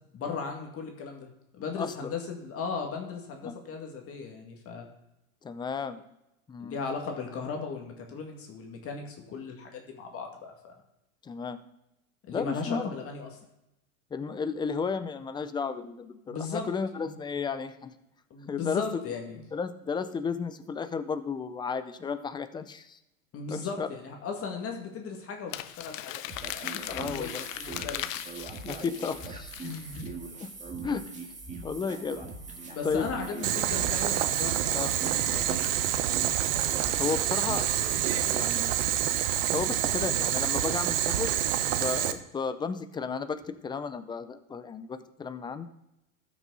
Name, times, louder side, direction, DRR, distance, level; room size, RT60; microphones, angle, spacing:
voice 1, 0.1-1.3 1.6-4.9 6.6-10.7 12.2-13.3 16.3-16.7 17.0-17.2 18.3-19.4 23.3-26.2 26.5-28.0 29.6-30.1 32.7-35.7, left 5 dB, 35° left, 2 dB, 2.0 m, -37 dB
voice 2, 1.8-2.1 3.4-3.6 5.4-6.0 6.5-6.8 11.2-11.6 12.3-12.9 14.1-18.0 18.5-18.8 19.5-23.0 23.5-23.9 26.9-27.4 28.6-29.5 30.4-30.5 30.8-31.0 31.6-32.3 32.8-33.1 34.7-34.9 37.0-38.7 39.5-41.4 41.8-45.7, left 5 dB, 10° left, 12 dB, 0.4 m, -33 dB
Crumpling crinkling, 25.5-30.1, left 14 dB, 70° left, 0.7 m, -38 dB
sound 1, 26.3-38.3, right 4 dB, 20° right, 1.9 m, -41 dB
Boiling, 33.4-42.1, right 12 dB, 70° right, 0.9 m, -27 dB
13.5 x 6.3 x 3.9 m, 0.89 s
hypercardioid pair, 110°, 40 cm